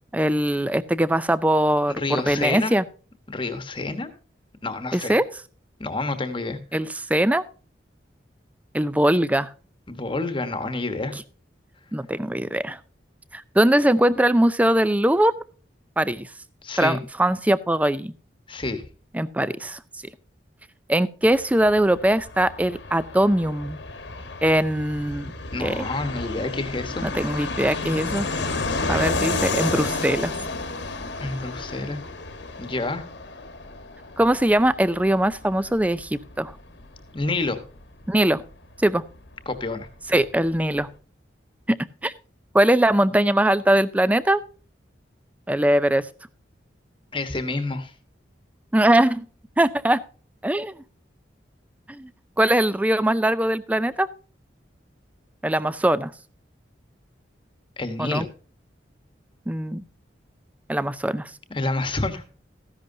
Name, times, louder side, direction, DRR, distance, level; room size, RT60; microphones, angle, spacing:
voice 1, 0.1-2.8 4.9-5.3 6.7-7.4 8.7-9.5 11.9-12.8 13.3-15.3 16.0-16.3 16.8-18.1 19.1-19.8 20.9-23.8 24.4-25.3 25.6-25.8 27.0-28.3 28.9-30.3 34.2-36.5 38.1-38.4 38.8-39.0 40.1-40.9 41.7-41.8 42.0-42.1 42.5-44.4 45.5-46.1 48.7-49.3 49.6-50.0 50.4-50.7 51.9-52.1 52.4-54.1 55.4-56.1 58.0-58.3 59.5-59.8 60.7-61.3, right 1 dB, 10° right, 17 dB, 0.4 m, -21 dB
voice 2, 1.9-2.8 3.3-4.1 4.6-5.2 5.8-6.6 9.9-11.1 16.6-17.0 18.5-18.8 25.5-27.0 31.2-32.0 32.6-33.1 37.1-37.6 39.5-39.9 47.1-47.9 57.8-58.3 61.5-62.2, left 2 dB, 25° left, 9 dB, 1.2 m, -28 dB
Fixed-wing aircraft airplane, 21.2-39.6 39.9-40.0 40.2-40.9, left 3 dB, 70° left, 1.4 m, -32 dB
14.0 x 10.5 x 2.7 m, 0.38 s
head